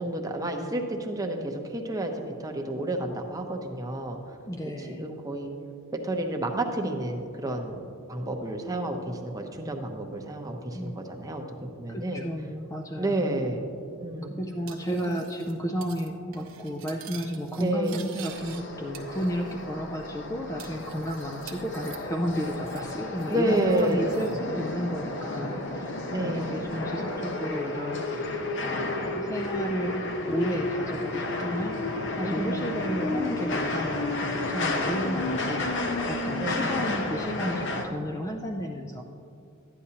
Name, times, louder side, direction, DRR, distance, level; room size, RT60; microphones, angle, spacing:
voice 1, 0.0-2.1 2.4-4.4 4.7-5.5 6.0-7.8 8.1-12.3 13.0-13.7 14.0-14.3 15.1-15.2 17.6-18.0 23.3-24.1 26.1-26.6 32.2-32.8 36.4-36.8, right 1 dB, 15° right, 3 dB, 0.7 m, -30 dB
voice 2, 4.5-5.0 10.7-11.0 11.9-13.3 14.2-25.9 26.2-28.4 28.6-31.8 32.2-39.0, equal, 15° left, 2 dB, 0.4 m, -33 dB
Cutlery silverware, 14.7-15.5 15.8-16.1 16.3-18.6 18.9-19.7 19.9-20.0 20.6-22.9 23.2-24.4, right 9 dB, 65° right, 0.9 m, -47 dB
sound 1, 18.3-37.8, left 2 dB, 60° left, 0.8 m, -32 dB
12.5 x 9.6 x 2.9 m, 2.5 s
head